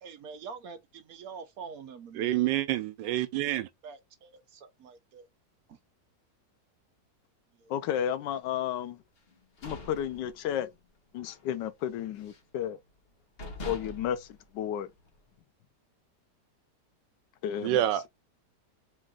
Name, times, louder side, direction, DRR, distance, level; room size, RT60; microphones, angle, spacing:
voice 1, 0.0-2.5 3.8-5.2 7.6-7.7, right 5 dB, 65° right, 1.0 m, -45 dB
voice 2, 2.1-3.7 17.6-18.1, right 13 dB, 85° right, 1.3 m, -27 dB
voice 3, 7.7-9.0 9.6-10.7 11.1-12.8 13.7-14.3 14.5-14.9 17.4-17.8, left 10 dB, 80° left, 1.2 m, -32 dB
sound 1, 9.3-10.9 11.2-11.5 11.8-12.6 13.0-13.1 13.4-15.2, left 1 dB, 40° left, 1.0 m, -44 dB
4.6 x 2.5 x 3.7 m
omnidirectional pair, 1.9 m